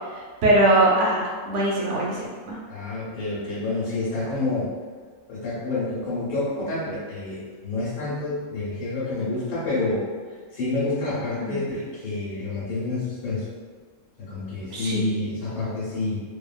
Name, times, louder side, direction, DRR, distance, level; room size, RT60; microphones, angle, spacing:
voice 1, 0.4-2.6 11.5-11.6 14.7-15.1, right 1 dB, 70° right, -5 dB, 0.8 m, -21 dB
voice 2, 2.7-4.7 5.3-10.1 10.5-13.5 14.2-16.2, left 2 dB, 85° left, -10 dB, 1.2 m, -28 dB
2.7 x 2.2 x 2.3 m, 1.5 s
omnidirectional pair, 1.5 m